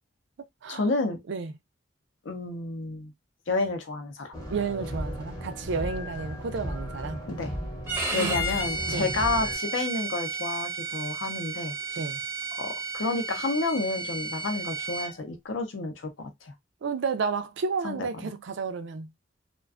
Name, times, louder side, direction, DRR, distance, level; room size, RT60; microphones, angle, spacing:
voice 1, 0.7-1.2 2.2-3.1 3.5-4.3 7.3-7.5 8.1-12.0 12.6-16.5 17.8-18.3, left 3 dB, 70° left, 0.6 m, -30 dB
sound 1, 4.3-9.6, equal, 20° left, 0.7 m, -36 dB
voice 2, 4.5-7.2 8.1-9.1 12.0-12.2 16.8-19.1, right 5 dB, 65° right, 0.4 m, -32 dB
Bowed string instrument, 7.9-15.1, right 3 dB, 10° right, 0.6 m, -33 dB
2.4 x 2.2 x 2.3 m
head